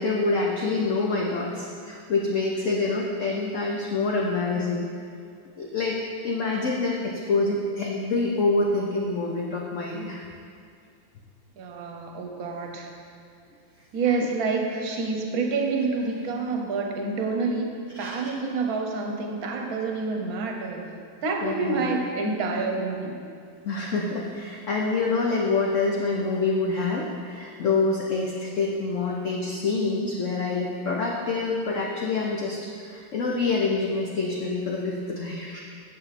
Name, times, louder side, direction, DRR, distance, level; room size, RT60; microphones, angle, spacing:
voice 1, 0.0-4.9 5.6-6.0 6.2-10.2 18.0-18.2 21.4-21.8 23.6-35.6, left 3 dB, 85° left, -1 dB, 0.6 m, -26 dB
voice 2, 11.6-12.9 13.9-20.8 21.2-23.2, right 4 dB, 55° right, 2 dB, 1.2 m, -28 dB
8.8 x 6.6 x 4.1 m, 2.4 s
omnidirectional pair, 2.2 m